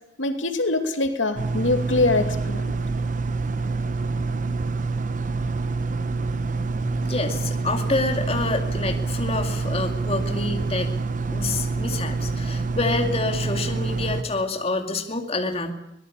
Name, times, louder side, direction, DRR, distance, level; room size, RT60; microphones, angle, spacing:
voice 1, 0.2-2.7, left 2 dB, 80° left, 6 dB, 2.7 m, -23 dB
sound 1, 1.4-14.2, right 3 dB, 40° right, 0.9 m, -26 dB
voice 2, 7.1-10.9 11.3-15.7, left 3 dB, 30° left, 4 dB, 2.4 m, -27 dB
24.0 x 18.5 x 8.5 m, 0.80 s
head